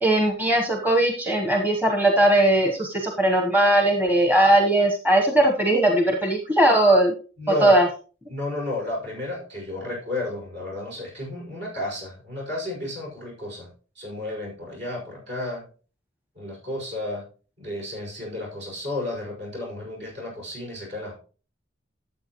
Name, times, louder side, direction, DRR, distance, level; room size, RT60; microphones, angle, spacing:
voice 1, 0.0-7.1 7.6-7.9, right 1 dB, 10° right, 2 dB, 1.1 m, -19 dB
voice 2, 7.4-7.8 8.3-13.7 14.0-15.6 16.4-17.2 17.6-21.1, left 2 dB, 60° right, -2 dB, 5.5 m, -32 dB
12.5 x 7.6 x 3.0 m, 0.37 s
head